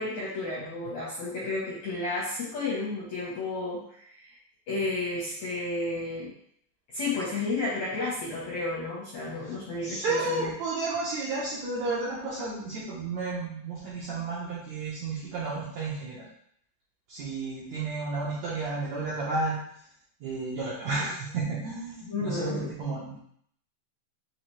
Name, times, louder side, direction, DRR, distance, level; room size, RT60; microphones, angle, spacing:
voice 1, 0.0-4.3 4.7-6.3 6.9-10.5 22.0-22.7, left 2 dB, 75° left, -6 dB, 1.6 m, -32 dB
voice 2, 9.8-16.3 17.1-19.6 20.2-23.2, right 3 dB, 80° right, -7 dB, 1.6 m, -32 dB
5.6 x 3.1 x 3.1 m, 0.66 s
omnidirectional pair, 4.3 m